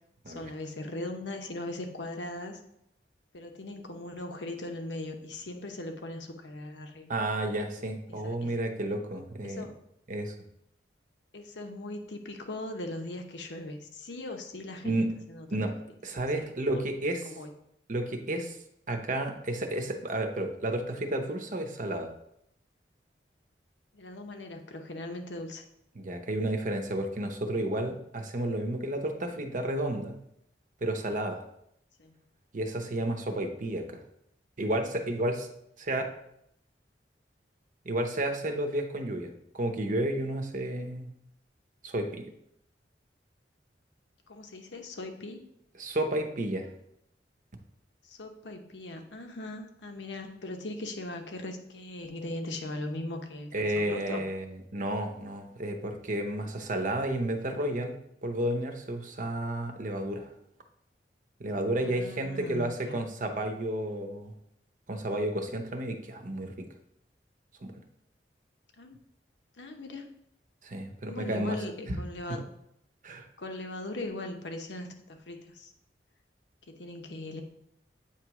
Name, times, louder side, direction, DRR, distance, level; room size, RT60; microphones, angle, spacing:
voice 1, 0.3-2.6 3.3-7.1 8.1-8.6 9.4-9.7 11.3-15.5 16.4-16.5 16.7-16.9 17.2-17.5 23.9-25.6 32.0-32.1 44.3-45.4 48.1-54.2 61.7-63.0 68.8-69.0 69.6-70.1 71.1-72.5 73.4-75.7 76.7-77.4, left 2 dB, 80° left, 5 dB, 0.9 m, -39 dB
voice 2, 7.1-9.7 10.1-10.3 14.8-15.1 15.5-15.7 16.0-17.2 17.9-18.5 18.9-22.1 25.9-30.2 30.8-31.4 32.5-34.0 34.6-35.5 35.8-36.0 37.8-41.1 41.8-42.2 45.8-46.7 53.5-57.9 58.2-60.3 61.4-64.3 64.9-66.7 67.6-67.7 70.6-71.6 71.9-72.0 72.3-72.4 73.0-73.3, right 1 dB, 45° right, 5 dB, 0.8 m, -31 dB
8.5 x 3.0 x 4.7 m, 0.77 s
head